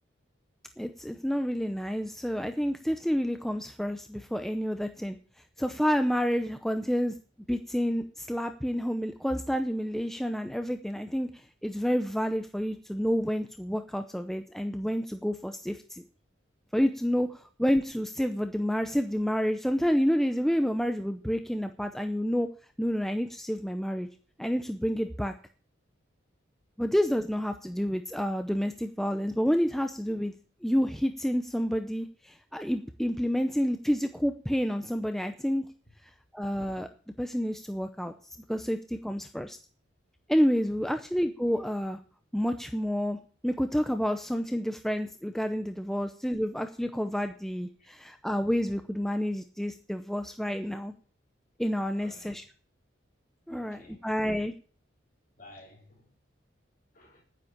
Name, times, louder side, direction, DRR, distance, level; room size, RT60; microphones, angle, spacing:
voice 1, 0.8-5.2 5.6-7.1 7.5-16.0 16.7-22.5 22.8-24.1 24.4-25.3 26.8-30.3 30.6-35.7 36.0-36.9 37.2-39.6 40.3-42.0 42.3-43.2 43.4-50.9 51.6-52.4 53.5-54.5, equal, ahead, 0.7 m, -29 dB
voice 2, 51.9-52.4 53.5-54.1 55.4-56.1 56.9-57.2, left 2 dB, 45° left, 4.7 m, -53 dB
9.8 x 9.0 x 8.7 m
head